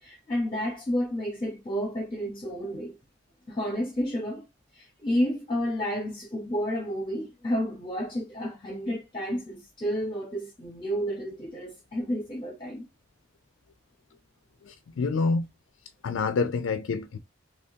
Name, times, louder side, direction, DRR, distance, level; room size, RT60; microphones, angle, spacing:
voice 1, 0.0-3.0 3.5-4.4 4.7-12.8, equal, 25° left, 0.8 m, -31 dB
voice 2, 14.6-15.5 16.0-17.2, left 4 dB, 80° left, 0.4 m, -27 dB
3.4 x 3.1 x 2.7 m
head